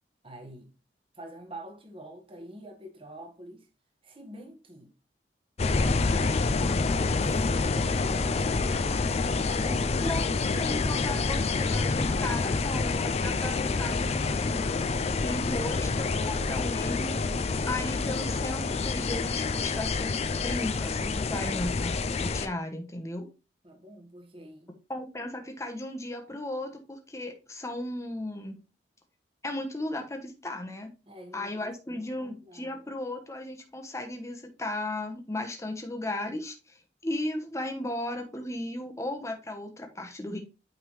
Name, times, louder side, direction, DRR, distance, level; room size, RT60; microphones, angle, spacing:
voice 1, 0.2-0.7 1.1-3.7 4.0-4.9 5.6-8.7 9.1-10.1 23.6-24.7 31.0-32.7, right 1 dB, 30° right, 1.4 m, -47 dB
sound 1, 5.6-22.5, left 3 dB, 35° left, 0.4 m, -27 dB
voice 2, 10.6-14.6 15.2-17.3 17.7-23.3 24.9-28.6 29.4-30.9 31.3-40.4, left 1 dB, 15° left, 1.0 m, -36 dB
8.9 x 3.6 x 3.2 m
head